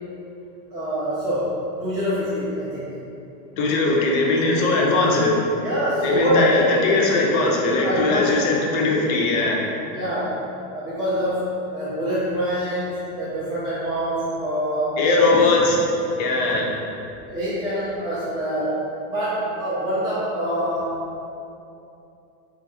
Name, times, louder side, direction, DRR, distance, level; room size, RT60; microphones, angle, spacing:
voice 1, 0.7-3.0 5.6-6.6 7.8-8.5 9.9-10.4 10.7-15.5 17.3-18.8 19.1-21.0, equal, 10° right, -12 dB, 0.6 m, -25 dB
voice 2, 3.6-5.4 6.0-9.6 15.0-15.8 16.2-16.7, left 2 dB, 40° left, -1 dB, 0.5 m, -20 dB
3.6 x 2.5 x 2.7 m, 2.7 s
hypercardioid pair, 115°, 49 cm